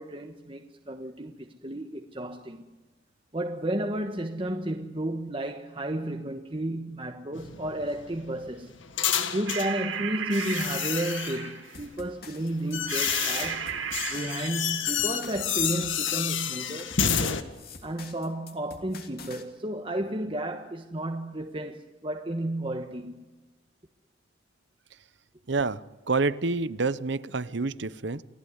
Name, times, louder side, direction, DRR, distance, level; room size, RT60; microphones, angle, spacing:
voice 1, 0.0-2.6 3.3-8.7 9.3-13.7 14.1-17.5 17.8-23.2, right 1 dB, 25° right, 1.3 m, -32 dB
sound 1, 7.3-9.8 10.3-11.5 12.3-17.4, left 8 dB, 80° left, 1.8 m, -30 dB
sound 2, 9.5-11.8 12.9-14.5, right 7 dB, 85° right, 2.4 m, -34 dB
sound 3, 11.7-19.4, left 4 dB, 50° left, 3.0 m, -47 dB
voice 2, 25.5-28.2, right 3 dB, 65° right, 0.8 m, -28 dB
29.0 x 18.0 x 9.6 m
head